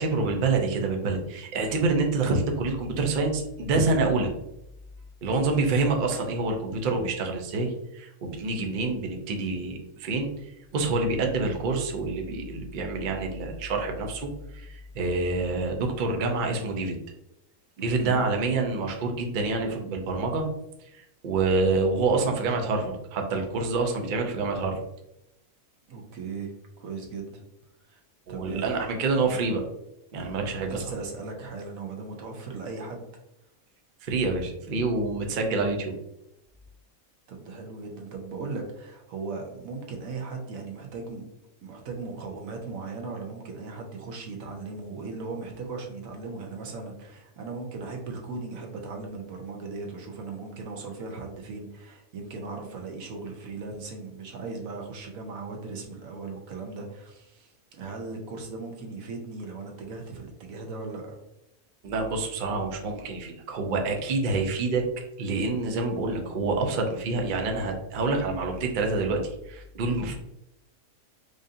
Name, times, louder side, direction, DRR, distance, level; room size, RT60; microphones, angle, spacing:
voice 1, 0.0-4.3 5.2-17.0 17.8-20.5 20.9-24.8 28.3-29.6 30.1-30.9 34.0-35.9 61.8-64.8 65.2-69.2 69.5-70.1, right 3 dB, 55° right, 2 dB, 0.6 m, -27 dB
voice 2, 17.8-18.2 25.9-27.4 27.9-28.0 28.3-28.7 30.7-33.0 37.3-41.2 41.6-61.2, right 4 dB, 75° right, 2 dB, 1.1 m, -38 dB
4.8 x 2.6 x 2.6 m, 0.85 s
omnidirectional pair, 1.5 m